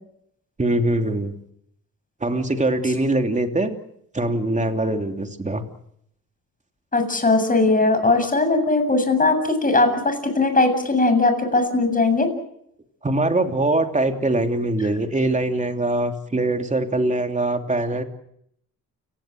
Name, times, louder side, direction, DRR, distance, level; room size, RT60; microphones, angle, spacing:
voice 1, 0.6-1.3 2.2-3.8 4.1-5.6 13.0-18.0, right 2 dB, 20° right, 5 dB, 3.1 m, -22 dB
voice 2, 6.9-12.3, left 3 dB, 25° left, 7 dB, 7.5 m, -19 dB
29.5 x 18.0 x 7.8 m, 0.73 s
cardioid pair, 105°, 35 cm